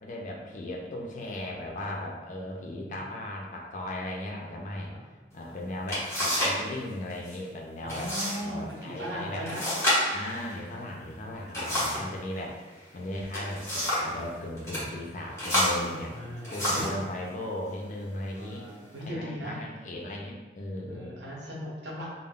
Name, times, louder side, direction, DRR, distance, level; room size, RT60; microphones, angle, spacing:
voice 1, 0.0-4.9 5.3-8.1 8.4-9.4 10.1-12.6 12.9-16.1 16.5-18.6 19.0-21.2, left 1 dB, 45° left, -1 dB, 0.4 m, -37 dB
voice 2, 2.3-3.0 4.9-5.0 7.8-9.7 11.4-12.1 16.1-16.9 18.3-19.6 20.9-22.1, equal, 85° right, -5 dB, 0.8 m, -39 dB
sound 1, 5.4-5.5 5.9-6.6 6.9-7.4 7.9-8.4 8.7-8.8 9.5-12.1 13.1-14.1 14.6-14.8 15.4-17.0 17.8-17.9 18.5-19.0, left 1 dB, 15° left, 0.9 m, -29 dB
2.2 x 2.0 x 3.6 m, 1.3 s
head